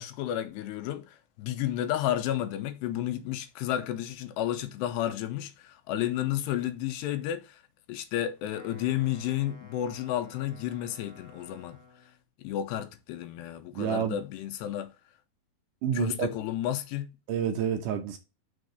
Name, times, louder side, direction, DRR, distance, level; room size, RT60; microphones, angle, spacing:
voice 1, 0.0-7.6 7.9-11.8 12.4-14.9 16.0-17.1, left 12 dB, 85° left, 3.0 m, -32 dB
Wind instrument woodwind instrument, 8.4-12.2, left 4 dB, 40° left, 1.7 m, -53 dB
voice 2, 13.7-14.2 15.8-16.3 17.3-18.2, right 8 dB, 70° right, 2.0 m, -29 dB
6.2 x 4.5 x 6.5 m
omnidirectional pair, 4.8 m